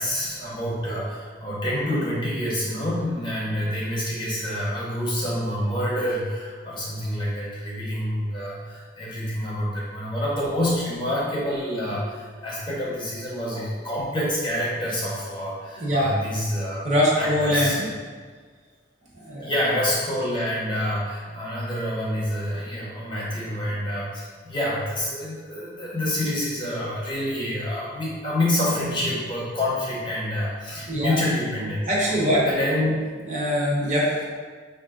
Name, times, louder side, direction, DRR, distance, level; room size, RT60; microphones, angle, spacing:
voice 1, 0.0-16.9 17.1-17.9 19.4-31.8 32.5-33.0, left 1 dB, 25° left, -6 dB, 0.9 m, -27 dB
voice 2, 15.8-16.1 16.8-17.7 19.2-19.5 30.9-31.2 31.9-32.5 33.3-34.3, equal, 40° right, -5 dB, 1.0 m, -22 dB
5.2 x 2.5 x 3.7 m, 1.5 s
head